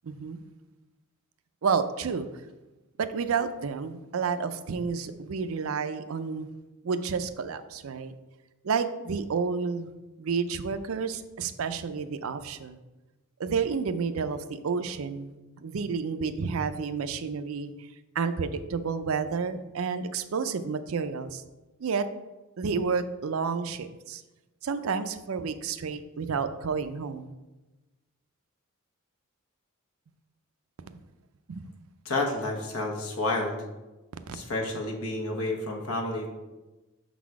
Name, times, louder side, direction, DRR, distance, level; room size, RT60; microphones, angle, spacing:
voice 1, 0.0-0.4 1.6-2.3 3.0-6.5 6.8-8.1 8.6-9.9 10.2-12.8 13.4-15.3 15.6-17.7 18.2-21.4 21.8-22.1 22.6-24.2 24.6-27.3 30.9-31.0 31.5-31.7 34.3-34.4, right 5 dB, 65° right, 11 dB, 0.4 m, -30 dB
voice 2, 32.0-33.6 34.3-36.3, left 2 dB, 80° left, 0 dB, 1.3 m, -30 dB
6.2 x 4.1 x 4.7 m, 1.1 s
head